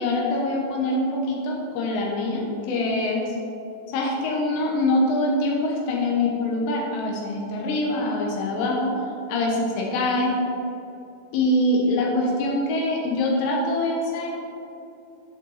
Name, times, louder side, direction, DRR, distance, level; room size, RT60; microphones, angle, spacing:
voice 1, 0.0-3.2 3.9-9.0 9.3-10.4 11.3-14.3, left 1 dB, 85° left, -2 dB, 3.4 m, -24 dB
8.3 x 7.8 x 4.1 m, 2.8 s
omnidirectional pair, 4.8 m